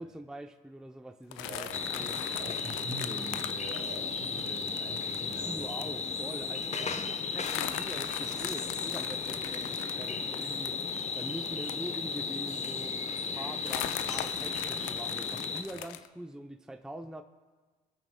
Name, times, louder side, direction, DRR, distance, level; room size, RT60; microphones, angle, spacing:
voice 1, 0.0-2.3 5.2-13.0 13.2-17.2, right 1 dB, 5° right, 7 dB, 0.6 m, -44 dB
sound 1, 1.3-5.3 5.8-6.0 6.2-6.3 6.6-6.8 7.4-12.4 12.8-12.9 13.6-16.1, left 12 dB, 75° left, 0.5 m, -40 dB
voice 2, 1.4-1.8 2.3-5.9 6.7-6.9 15.7-15.9, right 2 dB, 55° right, 1 dB, 3.1 m, -43 dB
sound 2, 1.7-15.6, left 5 dB, 35° left, 0.8 m, -35 dB
25.0 x 8.8 x 2.2 m, 1.4 s
hypercardioid pair, 55°, 21 cm